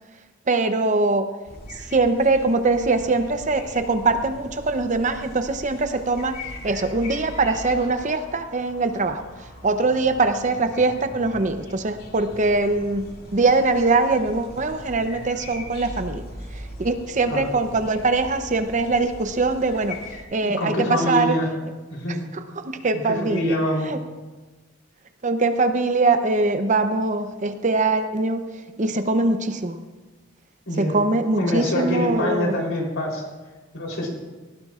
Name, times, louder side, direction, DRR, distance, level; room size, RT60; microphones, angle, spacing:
voice 1, 0.5-1.3 1.7-21.4 22.1-23.6 23.9-24.0 25.2-29.8 30.8-32.6, right 3 dB, 35° right, 8 dB, 0.7 m, -22 dB
sound 1, 1.5-20.2, left 1 dB, 50° left, 2.3 m, -40 dB
voice 2, 20.4-21.5 21.9-22.2 22.9-23.9 30.7-30.9 31.4-33.2 33.7-34.1, left 1 dB, 75° left, -1 dB, 3.6 m, -25 dB
19.0 x 15.5 x 2.4 m, 1.2 s
head